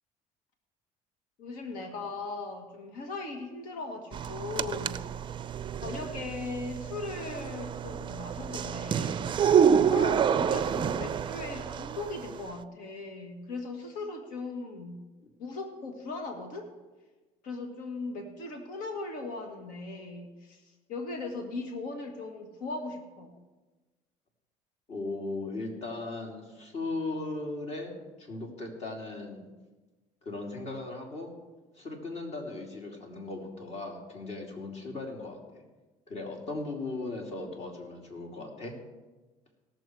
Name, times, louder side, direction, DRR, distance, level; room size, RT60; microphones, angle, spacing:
voice 1, 1.4-5.0 5.7-9.6 9.9-15.0 15.4-16.7 17.4-20.6 20.9-23.4, left 3 dB, 75° left, 4 dB, 1.8 m, -38 dB
sound 1, 4.1-12.5, right 7 dB, 35° right, 0.5 m, -28 dB
voice 2, 24.9-27.9 28.2-29.4 30.2-31.3 31.8-35.6 36.1-38.7, left 2 dB, 50° left, 1 dB, 3.0 m, -37 dB
18.0 x 7.0 x 4.7 m, 1.2 s
supercardioid pair, 95°, 14 cm